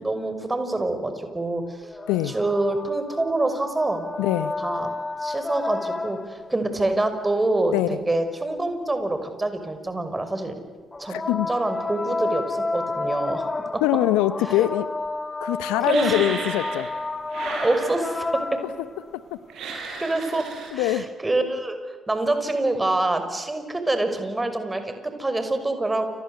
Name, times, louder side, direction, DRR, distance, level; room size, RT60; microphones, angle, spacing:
voice 1, 0.0-1.9 2.2-4.0 4.6-4.9 5.2-10.5 11.0-11.2 11.5-13.4 13.7-13.8 14.6-14.7 15.8-16.2 17.6-18.3 20.0-20.5 20.7-21.8 22.1-26.1, right 2 dB, 20° right, 8 dB, 5.9 m, -26 dB
sound 1, 1.8-6.6 10.9-19.2 20.5-20.6, left 3 dB, 25° left, 2.5 m, -31 dB
voice 2, 4.2-4.5 7.7-8.0 11.1-11.5 13.8-14.9 15.4-16.9 19.1-19.4 20.7-21.1, left 14 dB, 75° left, 16 dB, 0.9 m, -23 dB
sound 2, 15.8-17.0 17.3-18.4 19.5-20.7, right 4 dB, 65° right, 8.0 m, -34 dB
29.0 x 25.5 x 8.1 m, 1.5 s
hypercardioid pair, 45°, 0 cm